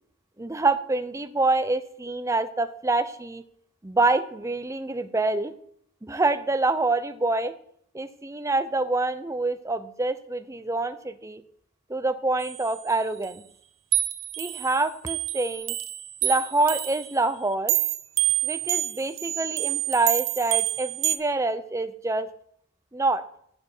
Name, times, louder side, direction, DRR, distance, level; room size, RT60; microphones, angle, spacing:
voice 1, 0.4-3.4 3.8-5.5 6.0-7.6 7.9-11.4 11.9-13.4 14.4-15.8 16.2-17.8 18.4-22.3 22.9-23.2, right 2 dB, 15° right, 11 dB, 0.6 m, -26 dB
sound 1, 12.4-12.9 13.2-13.3 13.9-17.1 17.7-21.2, right 13 dB, 75° right, 0.7 m, -27 dB
14.5 x 6.8 x 4.5 m, 0.67 s
head